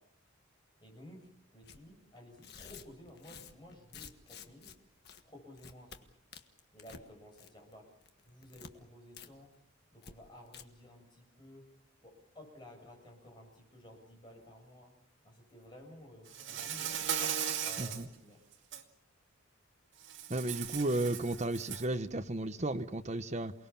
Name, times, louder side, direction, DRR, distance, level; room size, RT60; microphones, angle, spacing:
voice 1, 0.8-4.7 5.2-6.0 6.7-7.9 8.2-9.5 9.9-11.7 12.0-14.9 15.2-17.0 17.6-18.4, left 1 dB, 20° left, 7.2 m, -54 dB
Tearing, 1.6-1.8 2.3-4.8 5.0-5.2 5.5-6.0 6.3-7.0 7.3-7.7 8.0-8.7 9.1-9.3 9.5-9.6 10.0-10.1 10.5-10.6, left 6 dB, 50° left, 1.6 m, -51 dB
Insect, 16.3-18.0 18.5-18.8 20.0-21.9, right 9 dB, 60° right, 2.2 m, -37 dB
voice 2, 20.3-23.5, right 2 dB, 30° right, 1.1 m, -34 dB
28.5 x 20.0 x 7.1 m
head